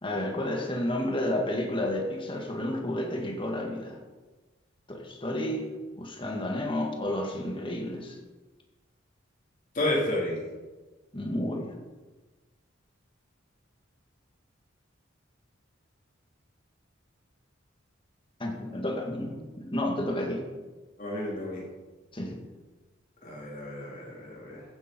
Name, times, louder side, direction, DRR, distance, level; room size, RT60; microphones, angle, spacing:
voice 1, 0.0-4.0 4.9-5.7 5.9-8.2 11.1-11.8 18.4-20.4 22.1-22.4, left 1 dB, 25° left, 1 dB, 2.1 m, -31 dB
voice 2, 9.7-10.5 21.0-21.7 23.2-24.6, left 1 dB, 40° left, -4 dB, 4.1 m, -31 dB
15.0 x 10.5 x 4.5 m, 1.3 s
head